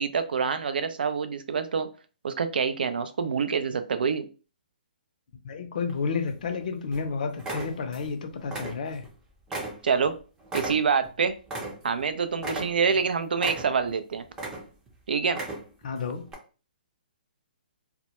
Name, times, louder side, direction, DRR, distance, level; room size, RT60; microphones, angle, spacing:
voice 1, 0.0-1.9 2.2-4.3 9.8-10.1 10.5-11.3 11.8-14.2 15.1-15.4, right 6 dB, 75° right, 11 dB, 0.4 m, -26 dB
voice 2, 5.4-9.0 15.8-16.3, left 5 dB, 60° left, 6 dB, 0.5 m, -31 dB
sound 1, 5.9-6.5 6.9-7.1 7.4-8.1 8.4-9.1 9.5-12.1 12.4-13.0 13.4-14.0 14.3-14.9 15.3-15.8 16.3-16.4, right 2 dB, 15° right, 0.6 m, -36 dB
2.1 x 2.1 x 2.8 m, 0.35 s
hypercardioid pair, 140°, 5 cm